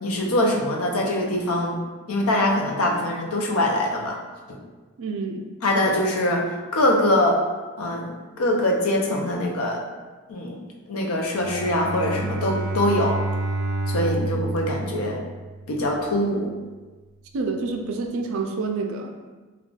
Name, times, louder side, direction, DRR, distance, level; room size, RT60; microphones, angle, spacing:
voice 1, 0.0-1.8 2.1-4.2 4.5-4.6 5.6-6.4 6.7-7.4 7.8-8.1 8.4-9.8 10.3-10.6 10.9-13.2 13.9-15.2 15.7-16.5, left 1 dB, 75° left, 1 dB, 0.5 m, -23 dB
voice 2, 5.0-5.4 17.3-19.3, right 3 dB, 65° right, 3 dB, 0.3 m, -28 dB
Bowed string instrument, 11.4-15.7, right 2 dB, 35° left, 1.1 m, -29 dB
2.3 x 2.3 x 3.7 m, 1.3 s
head